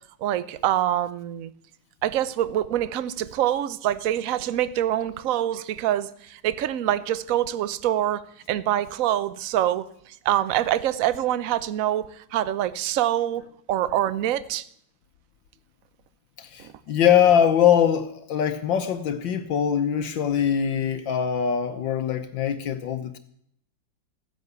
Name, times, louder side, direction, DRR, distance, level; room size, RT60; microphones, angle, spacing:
voice 1, 0.2-1.5 2.0-8.2 8.5-9.9 10.2-14.6 16.6-16.7, right 12 dB, 60° right, 0.9 m, -25 dB
voice 2, 16.4-23.2, left 9 dB, 75° left, 1.6 m, -22 dB
15.0 x 10.5 x 8.1 m
omnidirectional pair, 2.1 m